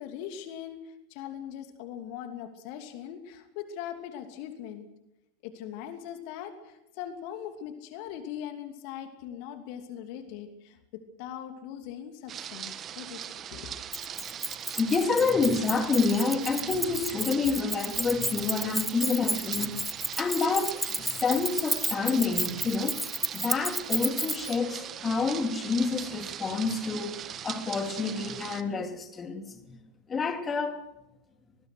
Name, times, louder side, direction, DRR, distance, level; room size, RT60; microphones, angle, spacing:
voice 1, 0.0-4.9 5.4-13.8, left 9 dB, 45° left, 2.7 m, -41 dB
sound 1, 12.3-28.6, right 9 dB, 30° right, 1.5 m, -40 dB
Keys jangling, 13.9-24.5, equal, ahead, 0.8 m, -32 dB
voice 2, 14.7-23.0 23.3-29.8 30.1-30.8, left 4 dB, 20° left, 2.7 m, -28 dB
24.5 x 20.5 x 6.4 m
figure-of-eight pair, 90°, 0 cm